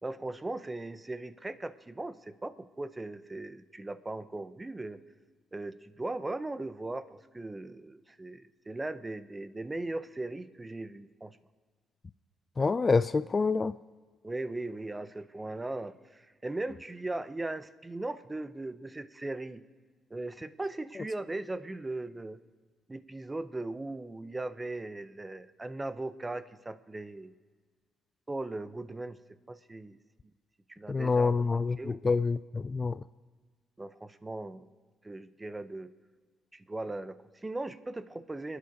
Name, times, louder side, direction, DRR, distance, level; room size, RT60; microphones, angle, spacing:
voice 1, 0.0-5.0 5.5-11.4 14.2-19.6 20.1-22.4 22.9-27.3 28.3-29.2 29.5-30.0 30.7-32.0 33.8-34.7 35.0-35.9 36.5-38.6, right 2 dB, 20° right, 13 dB, 0.7 m, -38 dB
voice 2, 12.6-13.8 30.9-33.0, left 4 dB, 30° left, 14 dB, 0.3 m, -27 dB
28.5 x 9.7 x 3.9 m, 1.5 s
cardioid pair, 90°, 0 cm